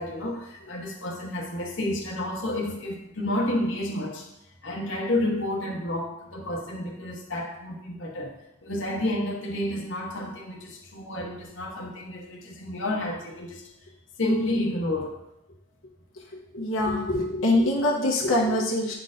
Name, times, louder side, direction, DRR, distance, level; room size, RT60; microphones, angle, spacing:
voice 1, 0.0-4.3 4.6-8.3 8.6-13.7 14.2-15.2, left 1 dB, 60° left, -1 dB, 1.0 m, -30 dB
voice 2, 16.3-18.9, left 1 dB, 80° left, -3 dB, 0.9 m, -24 dB
8.8 x 4.2 x 2.6 m, 0.84 s
head